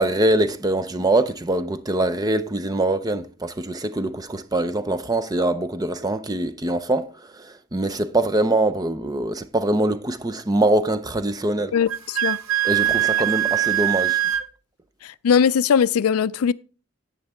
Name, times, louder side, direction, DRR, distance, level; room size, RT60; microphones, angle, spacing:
voice 1, 0.0-11.7 12.6-14.2, right 1 dB, 15° right, 0.5 m, -23 dB
voice 2, 11.7-12.4 15.0-16.5, left 7 dB, 80° left, 0.4 m, -20 dB
Wind instrument woodwind instrument, 11.9-14.5, right 12 dB, 65° right, 0.7 m, -22 dB
11.0 x 8.7 x 3.5 m
head